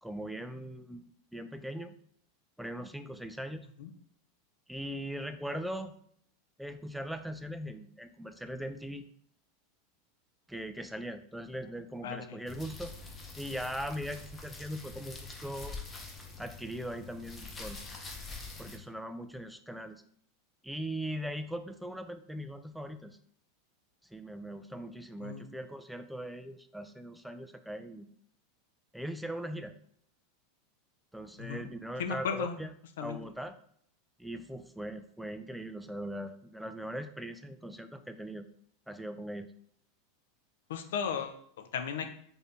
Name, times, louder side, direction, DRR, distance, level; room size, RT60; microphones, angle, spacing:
voice 1, 0.0-1.9 2.6-3.7 4.7-5.9 6.6-9.1 10.5-12.9 13.4-15.8 16.4-17.8 18.6-20.0 20.6-23.2 24.1-28.1 28.9-29.7 31.1-32.7 33.0-33.5 34.2-38.5 38.9-39.5, equal, ahead, 9 dB, 0.3 m, -40 dB
voice 2, 12.0-12.4 25.2-25.5 31.4-31.6 32.0-32.6 33.0-33.2 40.7-42.1, left 7 dB, 70° left, 6 dB, 0.4 m, -35 dB
sound 1, 12.5-18.8, left 3 dB, 20° left, 0.7 m, -45 dB
2.6 x 2.6 x 3.4 m, 0.65 s
hypercardioid pair, 95°, 0 cm